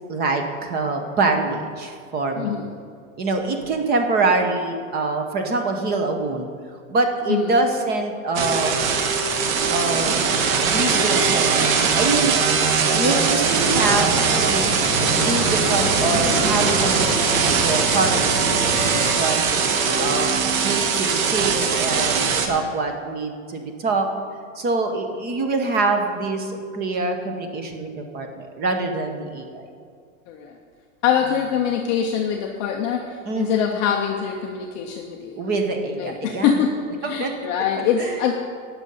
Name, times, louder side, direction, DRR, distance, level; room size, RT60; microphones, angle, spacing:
voice 1, 0.1-2.6 3.2-6.5 6.9-8.9 9.7-10.3 10.7-12.5 12.9-14.7 15.2-20.3 20.6-24.1 24.5-29.7 33.2-33.8 35.4-36.6 37.0-37.3 38.0-38.2, right 3 dB, 25° right, 5 dB, 0.9 m, -25 dB
sound 1, 8.3-22.5, right 5 dB, 85° right, 1.5 m, -21 dB
sound 2, 13.4-19.1, right 1 dB, 50° right, 3.0 m, -27 dB
voice 2, 31.0-35.4 36.0-38.3, left 8 dB, 25° left, 1 dB, 0.4 m, -24 dB
17.0 x 6.2 x 5.5 m, 2.2 s
supercardioid pair, 165°, 40 cm